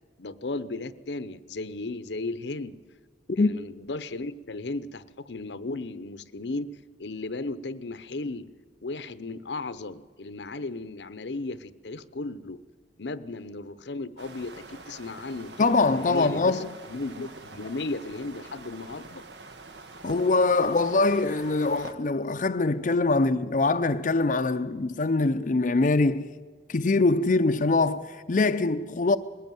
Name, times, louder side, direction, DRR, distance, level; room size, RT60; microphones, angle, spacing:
voice 1, 0.2-2.8 3.3-8.5 8.8-12.6 13.0-15.7 16.0-19.2, left 2 dB, 75° left, 0.8 m, -35 dB
sound 1, 14.2-21.9, right 3 dB, 75° right, 1.6 m, -45 dB
voice 2, 15.6-16.7 20.0-26.3 26.7-29.2, left 3 dB, 45° left, 0.5 m, -23 dB
21.0 x 16.0 x 9.2 m
head